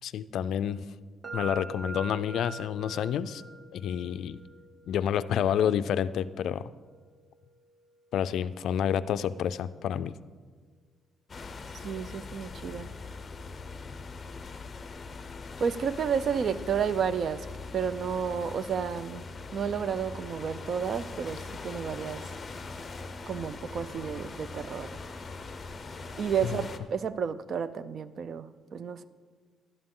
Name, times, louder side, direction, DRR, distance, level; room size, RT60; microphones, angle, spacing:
voice 1, 0.0-0.9 1.3-3.4 3.7-4.4 4.9-6.7 8.1-10.2 26.5-26.6, left 9 dB, 70° left, 14 dB, 0.3 m, -29 dB
sound 1, 1.2-9.1, right 3 dB, 25° right, 0.9 m, -45 dB
sound 2, 11.3-26.8, left 3 dB, 30° left, 0.6 m, -41 dB
voice 2, 11.7-12.9 15.6-17.5 17.7-19.2 19.5-22.2 23.3-24.9 26.2-29.0, right 7 dB, 50° right, 15 dB, 0.4 m, -31 dB
sound 3, 22.5-26.2, left 1 dB, 5° left, 3.5 m, -58 dB
11.5 x 11.0 x 3.7 m, 1.5 s
cardioid pair, 130°, 0 cm